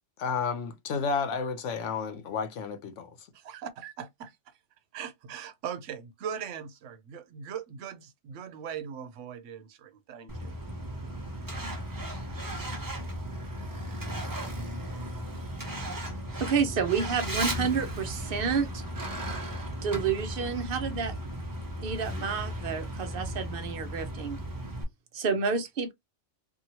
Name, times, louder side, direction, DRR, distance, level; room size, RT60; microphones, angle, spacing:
voice 1, 0.2-3.3, left 5 dB, 80° left, 1.0 m, -31 dB
voice 2, 3.3-4.4 4.9-10.5, right 8 dB, 90° right, 1.0 m, -40 dB
Truck, 10.3-24.8, right 1 dB, 20° right, 0.6 m, -36 dB
voice 3, 16.4-18.8 19.8-21.2 21.8-24.4 25.1-25.9, right 6 dB, 60° right, 0.7 m, -29 dB
2.8 x 2.6 x 2.8 m
omnidirectional pair, 1.2 m